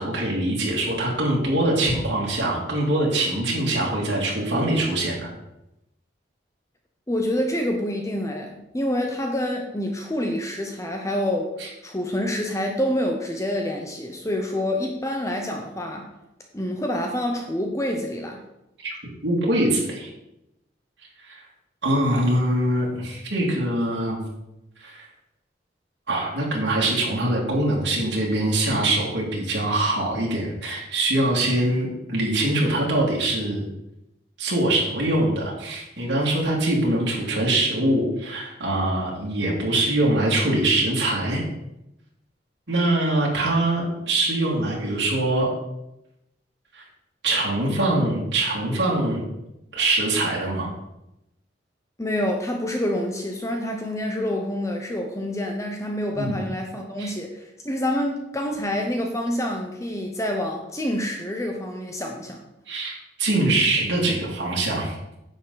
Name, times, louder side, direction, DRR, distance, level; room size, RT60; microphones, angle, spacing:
voice 1, 0.0-5.3 18.8-19.0 19.2-20.1 21.3-21.4 21.8-24.2 24.8-25.0 26.1-33.6 34.4-41.4 42.7-45.5 46.7-46.8 47.2-49.2 49.7-50.7 56.1-56.3 57.0-57.1 62.7-62.9 63.2-65.2, right 1 dB, 70° right, -4 dB, 2.6 m, -23 dB
voice 2, 7.1-11.5 11.8-16.1 16.5-18.4 52.0-62.4, left 1 dB, 15° left, 3 dB, 0.9 m, -27 dB
10.5 x 7.2 x 4.1 m, 0.88 s
head